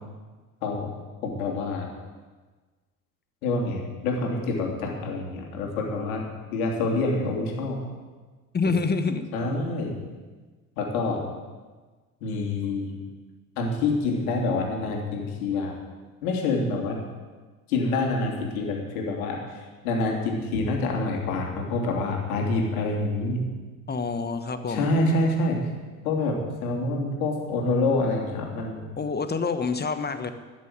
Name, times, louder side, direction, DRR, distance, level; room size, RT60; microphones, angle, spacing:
voice 1, 1.2-1.9 3.4-7.8 9.3-10.0 10.8-11.2 12.2-13.0 13.6-15.7 16.2-17.0 17.7-23.4 24.7-25.6 26.0-28.9, left 2 dB, 75° left, 0 dB, 3.2 m, -27 dB
voice 2, 8.5-9.2 23.9-24.9 29.0-30.3, left 4 dB, 20° left, 10 dB, 1.2 m, -27 dB
13.5 x 6.7 x 9.6 m, 1.4 s
hypercardioid pair, 75°, 43 cm